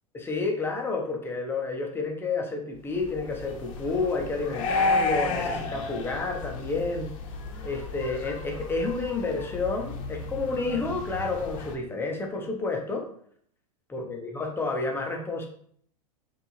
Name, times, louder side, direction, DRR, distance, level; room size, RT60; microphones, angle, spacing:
voice 1, 0.1-7.1 7.6-13.1 13.9-15.5, left 3 dB, 10° left, 1 dB, 0.8 m, -30 dB
sound 1, 3.0-11.7, left 3 dB, 55° left, 0.8 m, -32 dB
4.4 x 2.7 x 3.1 m, 0.62 s
hypercardioid pair, 105°, 19 cm